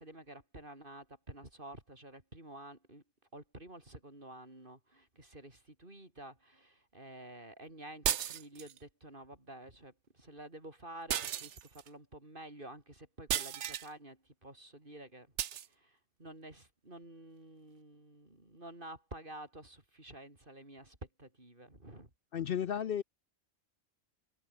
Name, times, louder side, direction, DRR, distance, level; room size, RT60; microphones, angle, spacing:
voice 1, 0.0-3.0 3.3-15.3 15.6-22.1, right 1 dB, 40° right, 5.3 m, -50 dB
sound 1, 8.0-8.8 11.1-11.9 13.3-13.9 15.4-15.7, right 10 dB, 65° right, 1.0 m, -34 dB
voice 2, 22.3-23.0, left 9 dB, 60° left, 0.7 m, -33 dB
omnidirectional pair, 1.4 m